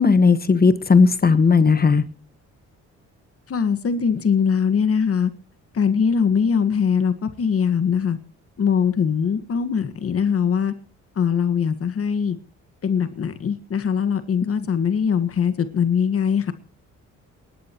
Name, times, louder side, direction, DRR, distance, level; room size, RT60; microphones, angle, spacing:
voice 1, 0.0-2.0, left 4 dB, 30° left, 13 dB, 1.3 m, -16 dB
voice 2, 3.5-5.3 5.7-8.2 8.6-10.7 11.2-12.4 12.8-16.5, left 6 dB, 50° left, 11 dB, 1.7 m, -21 dB
27.0 x 11.5 x 3.0 m, 0.39 s
cardioid pair, 90°, 30 cm